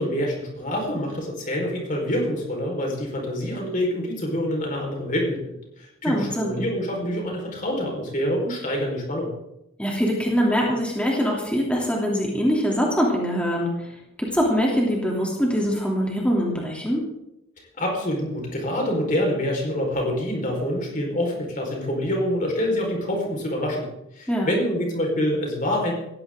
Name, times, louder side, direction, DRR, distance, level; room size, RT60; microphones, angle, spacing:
voice 1, 0.0-9.3 17.8-23.9 24.2-25.9, equal, 40° left, 0 dB, 4.7 m, -26 dB
voice 2, 6.0-6.6 9.8-13.9 14.2-17.0 24.3-24.5, equal, 5° left, -2 dB, 3.1 m, -23 dB
17.5 x 15.5 x 3.8 m, 0.83 s
head